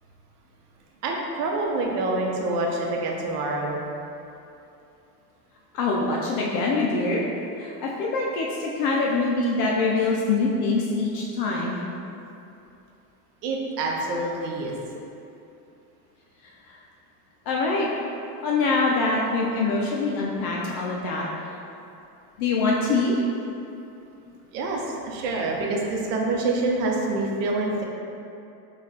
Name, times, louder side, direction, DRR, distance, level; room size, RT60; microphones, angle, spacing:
voice 1, 1.0-3.8 13.4-14.7 24.5-27.8, right 2 dB, 65° right, -1 dB, 0.9 m, -26 dB
voice 2, 5.7-7.2 7.6-11.8 16.7-16.8 17.5-17.9 18.4-21.3 22.4-23.1, left 3 dB, 45° left, -3 dB, 0.5 m, -24 dB
4.0 x 2.5 x 4.1 m, 2.7 s
supercardioid pair, 105°, 50 cm